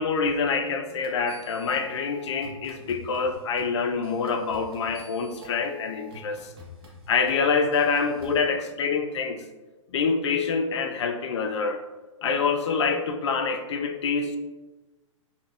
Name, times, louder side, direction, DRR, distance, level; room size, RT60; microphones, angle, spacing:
voice 1, 0.0-6.5 7.1-9.4 9.9-11.8 12.2-14.4, left 5 dB, 60° left, 7 dB, 0.4 m, -26 dB
sound 1, 1.0-8.4, left 1 dB, 50° right, 0.7 m, -48 dB
3.7 x 2.1 x 2.3 m, 1.2 s
hypercardioid pair, 150°, 17 cm